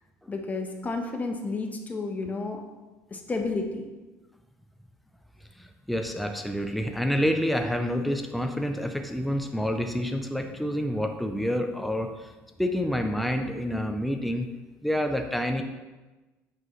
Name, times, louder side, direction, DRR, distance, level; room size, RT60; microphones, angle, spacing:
voice 1, 0.3-2.6 3.1-3.9, left 3 dB, 25° left, 3 dB, 1.1 m, -31 dB
voice 2, 5.6-12.3 12.6-14.5 14.8-15.6, equal, ahead, 4 dB, 0.6 m, -28 dB
7.8 x 5.4 x 3.2 m, 1.2 s
supercardioid pair, 85°, 6 cm